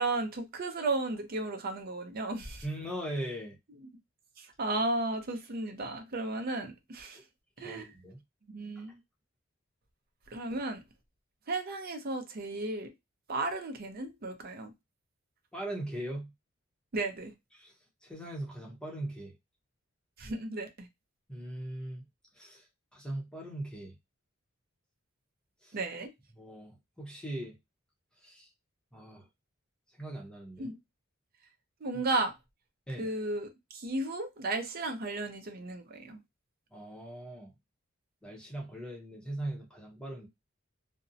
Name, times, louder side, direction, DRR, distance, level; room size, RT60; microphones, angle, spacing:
voice 1, 0.0-2.6 4.4-7.2 7.6-7.9 8.5-9.0 10.3-10.8 11.5-12.9 13.3-14.7 16.9-17.3 20.2-20.9 25.7-26.1 30.6-30.8 31.8-32.3 33.0-36.2, right 2 dB, 50° right, 0.5 m, -34 dB
voice 2, 2.6-3.6 7.6-8.2 8.8-8.9 15.5-16.3 17.5-17.7 18.0-19.3 21.3-22.0 22.3-22.6 22.9-23.9 25.6-25.8 26.3-27.6 28.2-28.5 28.9-29.2 30.0-30.7 32.9-33.1 36.7-37.5 38.2-40.3, right 1 dB, 5° left, 0.7 m, -40 dB
2.5 x 2.0 x 2.6 m
head